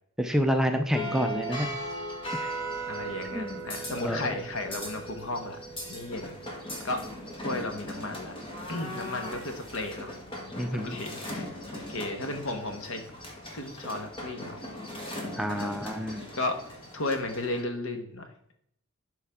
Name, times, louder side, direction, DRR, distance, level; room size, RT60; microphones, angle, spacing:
voice 1, 0.2-1.7 2.4-2.5 3.3-3.6 4.0-4.2 10.6-11.0 15.4-16.3, equal, ahead, 5 dB, 0.4 m, -28 dB
sound 1, 0.9-17.6, equal, 25° left, 1.4 m, -38 dB
voice 2, 1.0-1.5 2.9-5.6 5.9-6.4 6.8-7.0 7.4-8.4 8.7-10.1 10.7-13.0 13.5-14.6 15.5-15.7 16.3-16.6 16.9-18.5, left 2 dB, 70° left, 5 dB, 1.2 m, -34 dB
11.5 x 4.6 x 3.6 m, 0.73 s
head